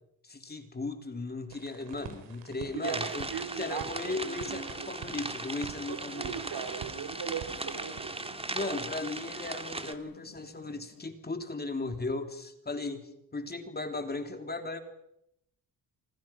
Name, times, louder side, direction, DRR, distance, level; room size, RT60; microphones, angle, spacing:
voice 1, 0.2-3.3 3.6-6.3 8.5-14.8, left 3 dB, 25° left, 6 dB, 3.2 m, -36 dB
sound 1, 1.5-8.0, right 7 dB, 85° right, 4.1 m, -47 dB
voice 2, 2.5-4.9 5.9-8.8, right 8 dB, 65° right, 7 dB, 3.8 m, -39 dB
sound 2, 2.8-9.9, right 2 dB, 15° right, 2.2 m, -38 dB
sound 3, 3.1-11.0, left 6 dB, 85° left, 6.7 m, -58 dB
27.0 x 26.0 x 6.0 m, 0.77 s
cardioid pair, 100°, 41 cm